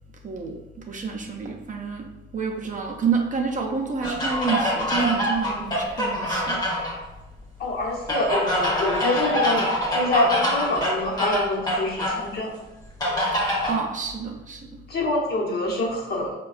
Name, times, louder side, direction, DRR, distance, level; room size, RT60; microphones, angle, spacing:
voice 1, 0.2-0.6 0.9-2.1 2.3-6.6 13.7-14.7, right 5 dB, 40° right, 1 dB, 0.5 m, -28 dB
sound 1, 4.0-7.0 8.1-12.2 13.0-13.8, equal, 20° left, 0.8 m, -25 dB
voice 2, 7.6-12.5 14.9-16.3, left 2 dB, 55° left, -2 dB, 0.9 m, -25 dB
4.5 x 2.2 x 2.4 m, 1.0 s
cardioid pair, 90°, 20 cm